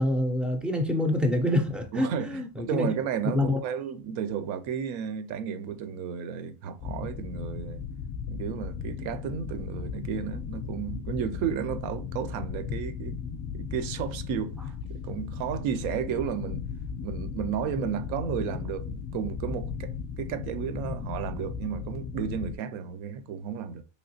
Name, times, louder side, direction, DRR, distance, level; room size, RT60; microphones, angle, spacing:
voice 1, 0.0-2.9 3.3-3.6, left 1 dB, ahead, 0.3 m, -26 dB
voice 2, 1.9-7.8 8.3-13.2 13.5-16.7 17.0-23.8, right 8 dB, 80° right, 0.6 m, -33 dB
sound 1, 6.8-22.6, left 6 dB, 55° left, 0.5 m, -36 dB
3.0 x 2.8 x 2.7 m
cardioid pair, 105°, 46 cm